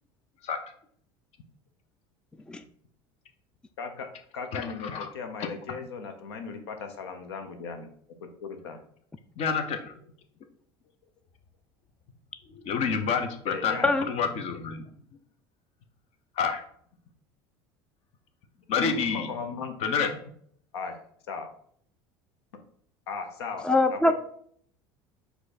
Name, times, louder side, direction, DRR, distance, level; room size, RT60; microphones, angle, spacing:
voice 1, 3.8-7.9 8.2-8.8 13.5-14.0 18.8-19.9 20.7-21.5 22.5-22.6 23.1-24.1, left 5 dB, 85° left, 6 dB, 0.6 m, -37 dB
voice 2, 4.5-5.1 5.4-5.5 9.4-9.9 12.5-14.9 16.4-16.6 18.7-19.3 19.8-20.1, left 6 dB, 50° left, 7 dB, 0.7 m, -28 dB
voice 3, 23.6-24.1, left 2 dB, 5° left, 9 dB, 0.3 m, -22 dB
4.6 x 2.7 x 4.1 m, 0.63 s
hypercardioid pair, 80°, 13 cm